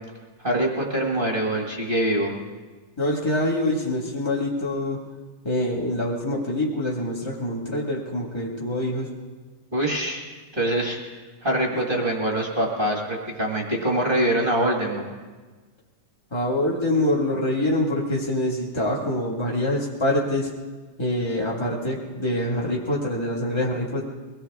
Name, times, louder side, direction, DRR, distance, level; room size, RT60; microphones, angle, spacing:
voice 1, 0.4-2.3 9.7-10.2 10.5-11.0 11.4-15.0, right 1 dB, 25° right, -1 dB, 1.1 m, -24 dB
voice 2, 3.0-5.0 5.4-9.1 11.7-11.8 16.3-20.5 21.0-24.0, left 1 dB, 20° left, -5 dB, 0.8 m, -25 dB
23.0 x 17.5 x 3.6 m, 1.3 s
omnidirectional pair, 3.4 m